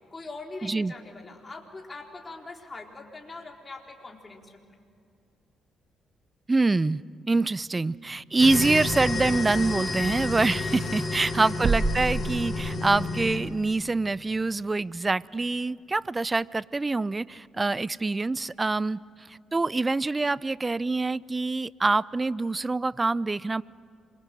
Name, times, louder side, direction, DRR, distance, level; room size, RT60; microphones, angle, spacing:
voice 1, 0.1-4.6 11.0-11.5 17.6-17.8, left 3 dB, 30° left, 1 dB, 3.9 m, -42 dB
voice 2, 0.6-0.9 6.5-7.0 7.3-23.6, right 3 dB, 25° right, 21 dB, 0.5 m, -25 dB
sound 1, 8.4-13.4, left 2 dB, 50° left, 6.2 m, -30 dB
sound 2, 11.6-13.2, right 4 dB, 50° right, 1.2 m, -28 dB
27.0 x 22.5 x 7.7 m, 2.3 s
hypercardioid pair, 50°, 0 cm